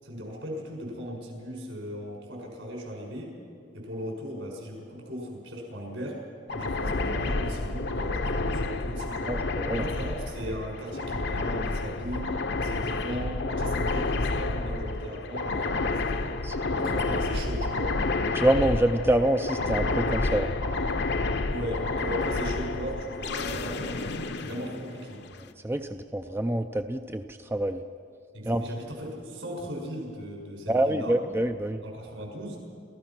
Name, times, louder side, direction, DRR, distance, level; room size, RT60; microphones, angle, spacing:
voice 1, 0.0-3.3 3.7-6.2 6.5-9.4 9.7-12.3 12.6-16.4 16.8-17.9 21.5-25.2 28.3-31.2 31.8-32.6, equal, 75° right, -1 dB, 6.4 m, -37 dB
sound 1, 6.5-25.3, left 3 dB, 60° left, 0.9 m, -30 dB
voice 2, 9.3-9.9 16.4-16.9 18.3-20.5 25.6-27.8 28.5-28.6 30.7-31.8, right 1 dB, 10° right, 7 dB, 0.4 m, -26 dB
29.5 x 15.0 x 6.0 m, 2.3 s
head